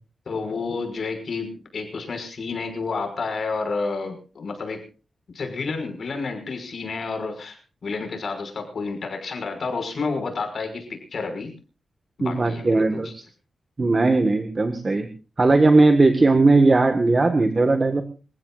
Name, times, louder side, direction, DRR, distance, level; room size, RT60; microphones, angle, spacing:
voice 1, 0.3-4.9 5.3-7.6 7.8-11.5 12.2-13.1, left 4 dB, 60° left, 6 dB, 6.0 m, -30 dB
voice 2, 12.2-13.2 13.8-15.1 15.4-18.0, right 3 dB, 30° right, 7 dB, 1.6 m, -18 dB
28.0 x 15.5 x 2.5 m, 0.35 s
wide cardioid pair, 135°, 0 cm